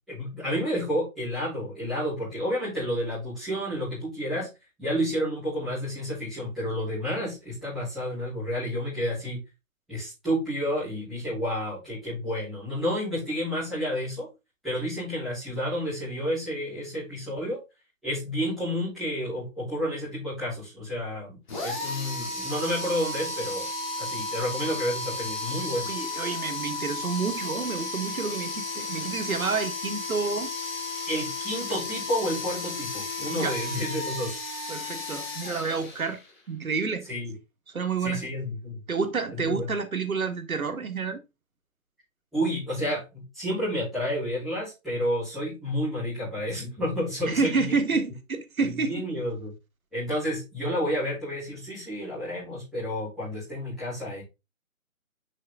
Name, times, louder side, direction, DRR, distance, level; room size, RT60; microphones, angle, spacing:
voice 1, 0.1-4.5 4.8-9.4 9.9-14.3 14.6-17.6 18.0-23.7 24.0-25.9 31.1-34.4 37.1-37.3 38.0-38.8 39.3-39.7 42.3-48.0 48.6-49.5 49.9-54.2, equal, ahead, 3.2 m, -30 dB
sound 1, 21.5-36.4, left 2 dB, 35° left, 2.4 m, -34 dB
voice 2, 25.9-30.5 33.3-33.5 34.7-36.2 36.5-37.0 37.7-38.2 38.9-41.2 47.3-49.0, right 5 dB, 85° right, 1.6 m, -29 dB
6.4 x 4.9 x 3.6 m
hypercardioid pair, 175°, 41 cm